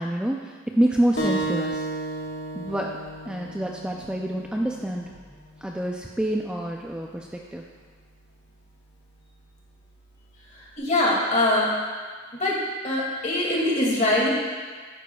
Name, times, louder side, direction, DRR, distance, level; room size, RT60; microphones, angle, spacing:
voice 1, 0.0-1.9 2.5-3.0 3.3-5.1 5.6-7.6, right 1 dB, 5° right, 0 dB, 0.4 m, -27 dB
sound 1, 1.2-6.3, right 2 dB, 60° left, 1.5 m, -33 dB
voice 2, 10.8-11.7 12.3-12.6 12.8-14.3, left 1 dB, 40° left, -4 dB, 2.4 m, -22 dB
12.0 x 9.1 x 2.3 m, 1.5 s
head